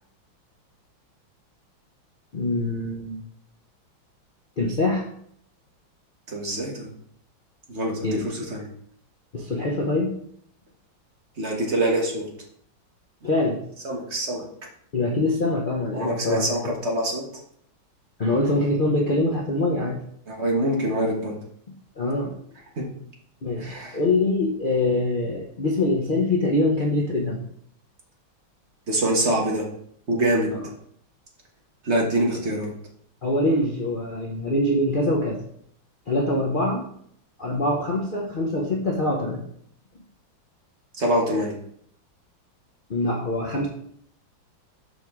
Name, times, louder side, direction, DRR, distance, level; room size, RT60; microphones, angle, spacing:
voice 1, 2.3-3.2 4.6-5.1 8.0-8.2 9.3-10.2 13.2-13.6 14.9-16.5 18.2-20.0 22.0-22.4 23.4-27.4 30.5-30.6 33.2-35.4 36.1-36.9 37.4-39.4 42.9-43.7, left 2 dB, 80° left, -2 dB, 0.4 m, -24 dB
voice 2, 6.3-6.9 7.7-8.7 11.4-12.3 13.8-14.5 15.9-17.2 20.3-21.4 22.8-22.9 23.6-24.0 28.9-29.7 30.1-30.5 31.8-32.7 41.0-41.6, right 1 dB, 40° right, -1 dB, 1.4 m, -25 dB
6.4 x 5.3 x 3.6 m, 0.65 s
omnidirectional pair, 2.2 m